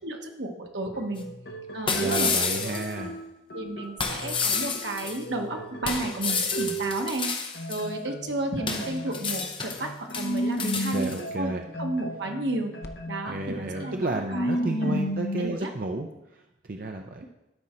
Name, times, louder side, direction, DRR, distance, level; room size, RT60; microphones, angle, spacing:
voice 1, 0.0-1.3 1.7-2.7 3.5-7.3 7.7-11.1 11.4-11.5 11.8-12.7 13.1-14.0 14.3-14.5 14.8-15.7, right 2 dB, 80° right, 3 dB, 1.2 m, -32 dB
sound 1, 0.9-7.2 7.5-15.6, right 1 dB, 60° left, 0.7 m, -34 dB
sound 2, 1.2-1.3 1.9-2.9 4.0-5.2 5.8-7.8 8.7-9.9 10.1-11.2, left 5 dB, 30° left, 0.8 m, -30 dB
voice 2, 1.9-3.1 10.9-11.6 13.3-17.2, right 2 dB, 50° right, 3 dB, 0.5 m, -32 dB
12.0 x 4.9 x 4.3 m, 0.96 s
head